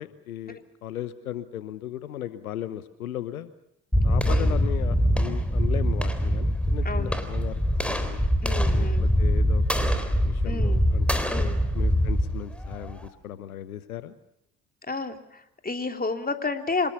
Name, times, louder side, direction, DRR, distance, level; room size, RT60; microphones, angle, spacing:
voice 1, 0.0-3.5 4.0-8.2 8.7-11.2 11.7-14.2, left 11 dB, 85° left, 14 dB, 1.0 m, -37 dB
sound 1, 3.9-13.1, equal, 5° left, 3.8 m, -23 dB
voice 2, 4.2-4.6 6.8-7.2 8.4-9.1 10.4-10.9 11.3-11.7 14.9-16.9, left 3 dB, 20° left, 6 dB, 3.2 m, -31 dB
26.0 x 20.5 x 6.9 m, 0.77 s
hypercardioid pair, 50°, 42 cm